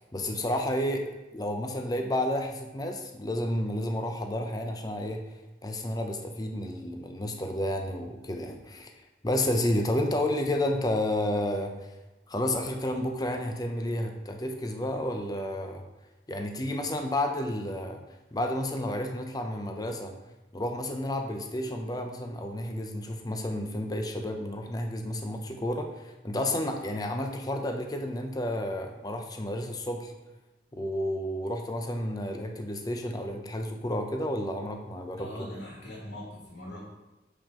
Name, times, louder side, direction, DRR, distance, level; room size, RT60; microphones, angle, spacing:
voice 1, 0.0-5.2 5.6-8.9 9.2-11.9 12.3-15.8 16.3-18.0 18.3-20.1 20.5-30.1 30.7-35.5, left 1 dB, 20° left, 3 dB, 0.6 m, -31 dB
voice 2, 35.2-36.8, left 1 dB, 85° left, -5 dB, 2.0 m, -41 dB
7.5 x 5.0 x 3.7 m, 1.1 s
head